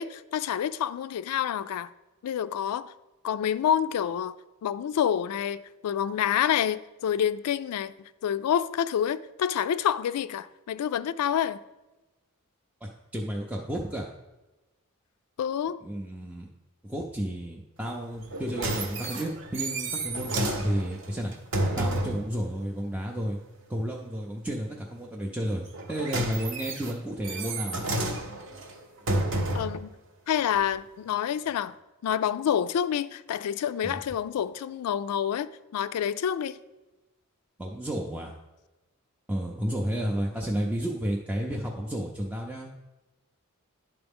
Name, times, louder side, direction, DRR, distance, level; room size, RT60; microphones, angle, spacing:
voice 1, 0.0-1.9 2.2-2.9 3.2-4.4 4.6-7.9 8.2-11.6 15.4-15.8 29.5-29.9 30.3-31.7 32.0-36.6, left 9 dB, 90° left, 0.3 m, -28 dB
voice 2, 12.8-14.1 15.8-16.5 16.8-21.3 21.8-23.4 23.7-25.6 25.9-27.9 33.8-34.0 37.6-38.3 39.3-42.7, equal, 5° right, 0.4 m, -32 dB
sound 1, 18.2-22.3 25.6-29.8 30.6-30.7, right 1 dB, 55° right, 0.8 m, -31 dB
11.0 x 3.9 x 3.5 m
head